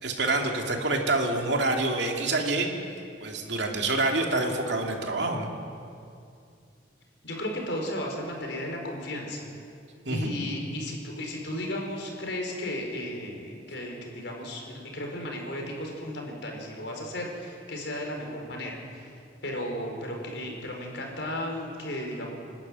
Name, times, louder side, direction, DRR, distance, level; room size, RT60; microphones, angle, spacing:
voice 1, 0.0-2.7 3.2-5.5 10.1-10.3, right 2 dB, 65° right, 2 dB, 2.7 m, -27 dB
voice 2, 7.2-9.4 10.1-19.1 19.4-22.3, left 1 dB, 65° left, 1 dB, 4.7 m, -34 dB
27.5 x 12.0 x 9.5 m, 2.5 s
head